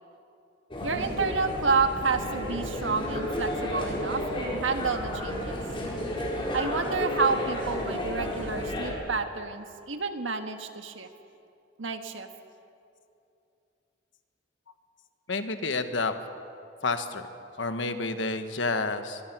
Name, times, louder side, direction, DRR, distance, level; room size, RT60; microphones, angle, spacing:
sound 1, 0.7-8.9, left 1 dB, 30° left, 4.5 m, -32 dB
voice 1, 0.8-5.6 6.5-11.1 11.8-12.3, right 4 dB, 85° right, 6 dB, 1.6 m, -29 dB
voice 2, 15.3-16.1 16.8-17.2 17.6-19.2, left 3 dB, 70° left, 8 dB, 1.4 m, -29 dB
23.0 x 22.5 x 6.1 m, 2.7 s
head